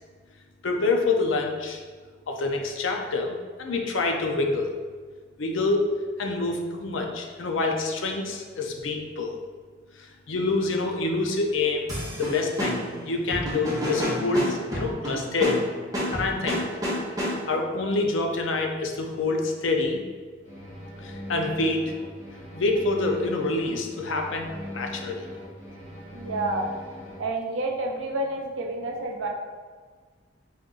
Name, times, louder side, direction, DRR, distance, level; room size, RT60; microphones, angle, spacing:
voice 1, 0.6-1.8 2.3-3.3 3.6-4.7 5.4-5.9 6.2-9.4 10.3-11.9 12.2-15.6 16.1-16.6 17.5-20.0 21.3-21.8 22.5-24.5 24.7-25.2, left 3 dB, 75° left, 3 dB, 0.5 m, -26 dB
sound 1, 11.9-17.7, equal, 20° right, 0.8 m, -30 dB
sound 2, 20.4-27.2, left 1 dB, 45° left, 1.4 m, -40 dB
voice 2, 26.1-26.7 27.2-29.3, right 2 dB, 75° right, 1 dB, 0.6 m, -29 dB
4.2 x 2.4 x 3.7 m, 1.5 s
head